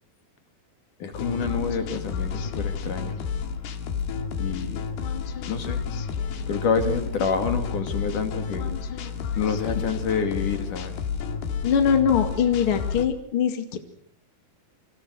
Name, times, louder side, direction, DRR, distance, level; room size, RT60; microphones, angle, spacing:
voice 1, 1.0-3.2 4.4-4.9 5.5-5.8 6.5-8.7 9.4-10.9, left 5 dB, 55° left, 6 dB, 3.7 m, -28 dB
sound 1, 1.1-13.0, left 6 dB, 80° left, 4.1 m, -31 dB
voice 2, 11.6-13.8, left 7 dB, 40° left, 6 dB, 2.6 m, -22 dB
29.5 x 25.5 x 6.4 m, 0.65 s
omnidirectional pair, 4.6 m